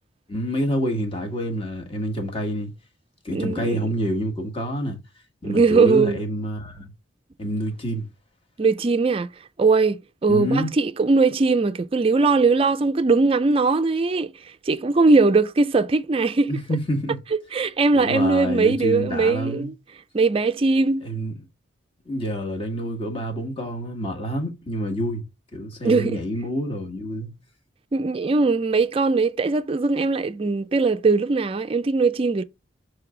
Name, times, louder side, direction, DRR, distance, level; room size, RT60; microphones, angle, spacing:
voice 1, 0.3-2.7 3.2-5.0 5.4-6.9 7.4-8.1 10.3-10.7 16.5-17.2 17.9-19.7 21.0-21.3 22.0-25.2 25.5-27.3, equal, 25° left, 1.4 m, -27 dB
voice 2, 3.3-3.9 5.4-6.2 8.6-9.3 9.6-14.3 14.7-16.6 17.5-19.7 20.1-21.1 25.8-26.2 27.9-32.4, right 3 dB, 30° right, 0.4 m, -20 dB
6.3 x 3.3 x 4.8 m
head